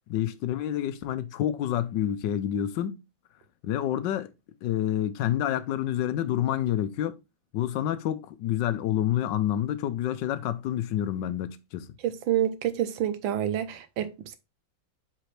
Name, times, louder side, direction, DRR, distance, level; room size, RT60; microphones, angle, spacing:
voice 1, 0.1-3.0 3.6-4.3 4.6-7.2 7.5-11.9, left 11 dB, 75° left, 1.3 m, -28 dB
voice 2, 12.0-14.3, right 10 dB, 90° right, 1.5 m, -28 dB
7.6 x 4.2 x 3.2 m
omnidirectional pair, 2.1 m